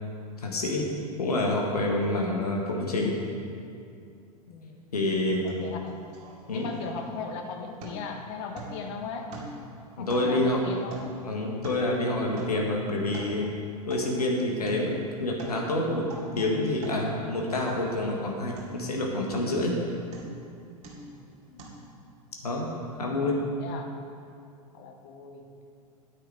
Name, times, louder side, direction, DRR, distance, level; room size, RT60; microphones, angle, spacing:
voice 1, 0.4-0.9 1.2-3.1 4.9-5.5 6.5-6.7 10.0-10.6 11.2-13.5 13.9-16.0 16.3-19.8 22.4-22.6 23.0-23.4, left 2 dB, 75° left, -1 dB, 1.7 m, -27 dB
voice 2, 4.5-4.8 5.4-6.0 6.5-9.3 10.0-11.2 21.0-21.7 23.0-23.1 23.5-23.9 24.7-25.4, left 5 dB, 45° left, 4 dB, 1.3 m, -38 dB
sound 1, 5.5-5.6 5.9-7.3 7.8-8.2 8.5-8.9 9.3-9.7 10.1-12.0 12.4-12.7 13.0-13.4 13.9-14.2 14.7-14.9 15.2-15.6 16.0-16.4 16.8-17.0 17.5-18.2 18.6-18.9 19.3-19.7 20.1-20.4 20.8-21.2 21.6-21.7, right 2 dB, 35° right, 2.3 m, -43 dB
9.9 x 9.1 x 4.7 m, 2.4 s
figure-of-eight pair, 90°, 20 cm